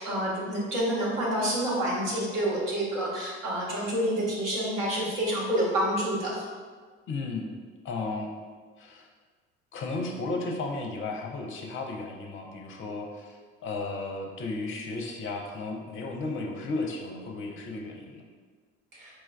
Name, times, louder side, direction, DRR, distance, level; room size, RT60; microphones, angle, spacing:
voice 1, 0.0-6.4 19.0-19.1, right 1 dB, 60° right, -5 dB, 1.0 m, -28 dB
voice 2, 7.1-7.5 7.8-8.3 8.8-9.1 9.7-18.2, left 3 dB, 35° left, 2 dB, 0.6 m, -34 dB
4.4 x 2.2 x 2.2 m, 1.5 s
figure-of-eight pair, 55°, 37 cm